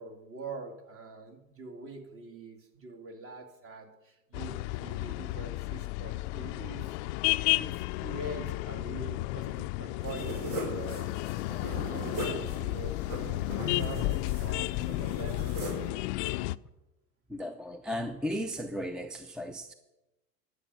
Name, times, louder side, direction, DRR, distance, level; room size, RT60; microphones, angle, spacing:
voice 1, 0.0-6.9 7.5-11.3 11.6-15.5, right 3 dB, 35° right, 2.1 m, -44 dB
sound 1, 4.3-16.6, left 20 dB, 60° left, 0.5 m, -33 dB
sound 2, 10.0-15.9, right 1 dB, 60° right, 5.1 m, -39 dB
voice 2, 17.3-19.7, equal, ahead, 0.5 m, -35 dB
11.0 x 8.1 x 6.0 m
hypercardioid pair, 95°, 38 cm